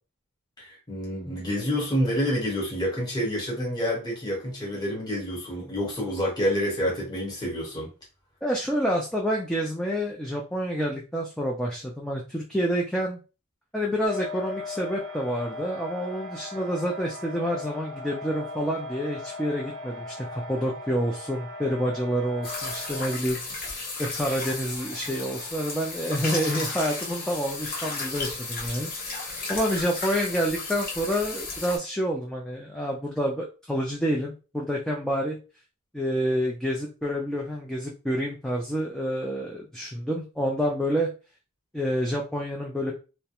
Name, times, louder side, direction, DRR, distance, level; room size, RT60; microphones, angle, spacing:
voice 1, 0.6-7.9, equal, 20° left, -3 dB, 1.0 m, -28 dB
voice 2, 8.4-13.2 13.7-23.7 24.0-35.4 35.9-41.1 41.7-42.9, equal, 5° left, -2 dB, 0.3 m, -28 dB
sound 1, 14.0-23.1, left 2 dB, 65° right, 0.6 m, -38 dB
sound 2, 22.4-31.8, left 3 dB, 45° left, 0.8 m, -34 dB
2.3 x 2.1 x 2.8 m, 0.32 s
head